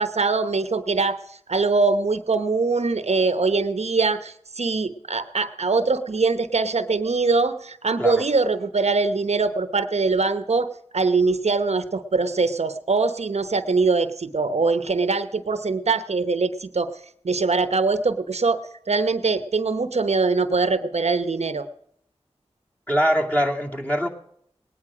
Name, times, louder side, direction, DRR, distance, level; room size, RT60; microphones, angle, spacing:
voice 1, 0.0-10.7 10.9-16.9 17.2-21.7, right 4 dB, 75° right, 11 dB, 0.9 m, -22 dB
voice 2, 22.9-24.1, equal, 15° left, 0 dB, 2.3 m, -22 dB
19.0 x 10.0 x 4.9 m, 0.72 s
wide cardioid pair, 45°, 11 cm